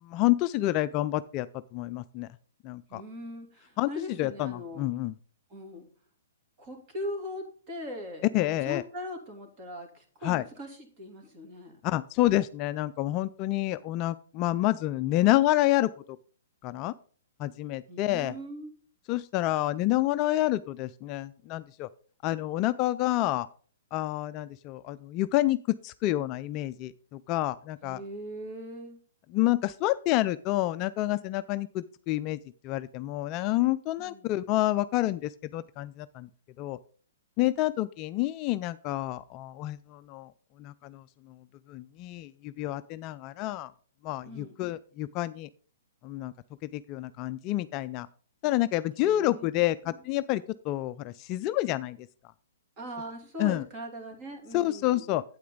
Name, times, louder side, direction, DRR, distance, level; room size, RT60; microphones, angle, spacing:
voice 1, 0.0-1.5 1.7-2.3 2.6-3.0 3.8-5.1 8.3-8.8 10.2-10.4 11.8-15.9 16.6-16.9 17.4-18.3 19.1-21.9 22.2-23.5 23.9-28.0 29.3-32.4 32.6-36.3 36.6-36.8 37.4-40.3 40.6-41.4 41.7-43.7 44.0-45.5 46.0-46.3 46.6-48.1 48.4-52.1 53.4-53.6 54.5-55.2, left 15 dB, 35° left, 14 dB, 0.3 m, -28 dB
voice 2, 2.9-4.9 5.5-5.9 6.6-10.7 11.0-11.8 17.9-18.7 27.8-29.0 34.0-34.3 44.2-44.5 49.0-49.5 49.8-50.0 52.8-55.1, left 1 dB, 35° right, 3 dB, 2.8 m, -40 dB
8.6 x 8.3 x 3.8 m, 0.43 s
hypercardioid pair, 130°, 0 cm